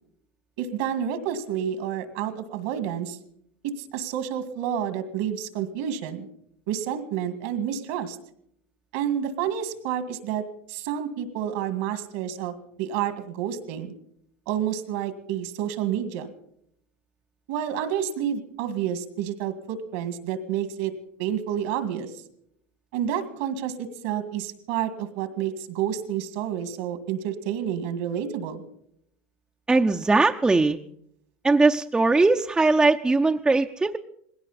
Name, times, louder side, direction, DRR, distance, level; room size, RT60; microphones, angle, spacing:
voice 1, 0.6-3.2 3.6-6.3 6.7-8.2 8.9-13.9 14.5-16.3 17.5-20.9 21.2-22.1 22.9-28.6, right 9 dB, 75° right, 10 dB, 1.9 m, -29 dB
voice 2, 29.7-30.8 31.4-34.0, right 3 dB, 10° right, 4 dB, 0.6 m, -20 dB
19.5 x 17.0 x 4.2 m, 0.71 s
supercardioid pair, 110°, 6 cm